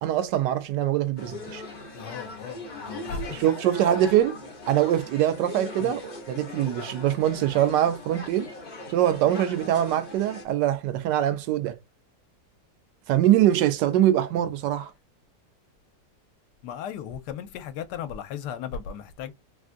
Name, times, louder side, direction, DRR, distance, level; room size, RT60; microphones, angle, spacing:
voice 1, 0.0-1.6 3.3-4.4 4.7-8.5 8.9-11.8 13.1-14.9, right 12 dB, 85° right, 1.2 m, -23 dB
sound 1, 1.2-10.4, left 2 dB, 35° left, 0.8 m, -40 dB
voice 2, 1.9-3.4 3.9-4.0 5.8-5.9 16.6-19.3, left 7 dB, 80° left, 1.2 m, -36 dB
3.4 x 2.3 x 2.5 m
omnidirectional pair, 1.8 m